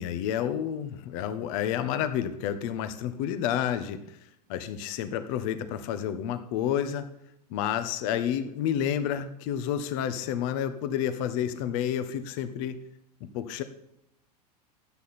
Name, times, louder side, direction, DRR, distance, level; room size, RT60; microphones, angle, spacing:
voice 1, 0.0-4.0 4.5-7.0 7.5-12.8 13.3-13.6, left 9 dB, 55° left, 11 dB, 1.4 m, -30 dB
15.5 x 11.0 x 4.3 m, 0.82 s
hypercardioid pair, 100°, 21 cm